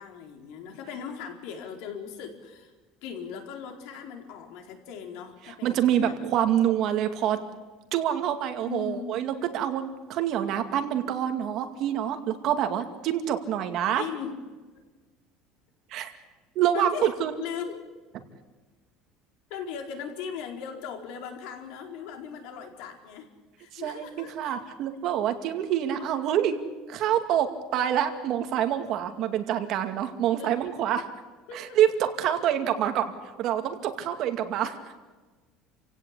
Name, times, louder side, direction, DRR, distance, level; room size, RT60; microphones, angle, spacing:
voice 1, 0.0-2.7 3.0-6.1 8.7-9.1 14.0-14.4 16.7-17.8 19.5-23.3 23.6-24.6 25.9-26.1 30.4-30.7 31.5-31.8, left 7 dB, 70° left, 4 dB, 4.4 m, -38 dB
voice 2, 5.5-7.4 7.9-14.0 15.9-16.1 16.6-17.3 23.7-26.6 26.9-31.1 31.5-34.8, right 10 dB, 45° right, 7 dB, 2.3 m, -26 dB
30.0 x 17.0 x 8.5 m, 1.3 s
cardioid pair, 165°, 0 cm